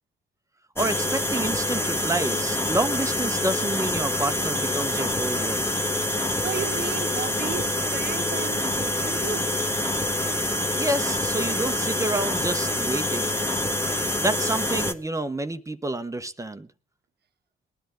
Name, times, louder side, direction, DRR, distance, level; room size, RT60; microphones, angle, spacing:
sound 1, 0.8-14.9, left 1 dB, 10° left, 1.2 m, -26 dB
voice 1, 0.8-5.7 10.8-13.4 14.2-16.7, right 2 dB, 15° right, 0.8 m, -29 dB
voice 2, 6.4-9.5, right 8 dB, 55° right, 1.1 m, -34 dB
20.0 x 10.5 x 3.8 m
cardioid pair, 90°, 20 cm